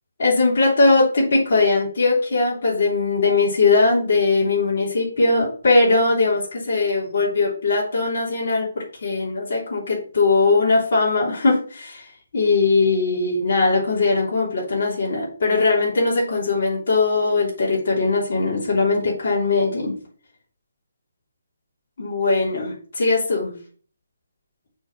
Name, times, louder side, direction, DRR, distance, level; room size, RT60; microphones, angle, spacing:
voice 1, 0.2-12.1 12.3-19.9 22.0-23.5, left 3 dB, 50° left, -5 dB, 3.3 m, -20 dB
7.0 x 4.0 x 6.3 m, 0.44 s
hypercardioid pair, 170°, 0 cm